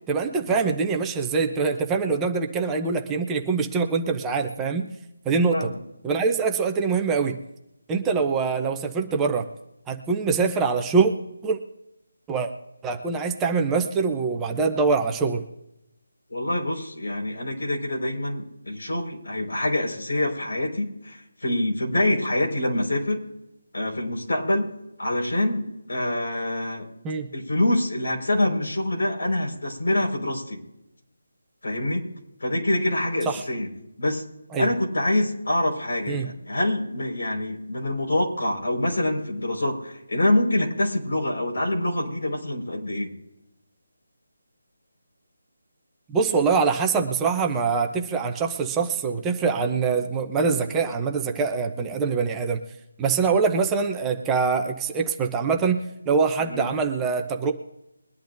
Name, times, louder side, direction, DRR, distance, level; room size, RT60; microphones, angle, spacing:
voice 1, 0.1-4.9 5.2-5.7 6.0-7.4 7.9-9.5 9.9-11.1 11.4-11.6 12.3-12.5 12.8-15.4 27.0-27.3 33.3-33.4 34.5-34.7 36.1-36.3 46.1-52.6 53.0-55.8 56.1-57.5, right 5 dB, 5° right, 3 dB, 0.7 m, -24 dB
voice 2, 16.3-23.2 23.7-24.7 25.0-26.9 27.3-30.6 31.6-32.1 32.4-33.7 34.0-34.2 34.6-43.1 56.4-56.6, left 1 dB, 85° left, 0 dB, 4.7 m, -25 dB
22.5 x 11.0 x 2.6 m, 0.88 s
figure-of-eight pair, 175°, 0 cm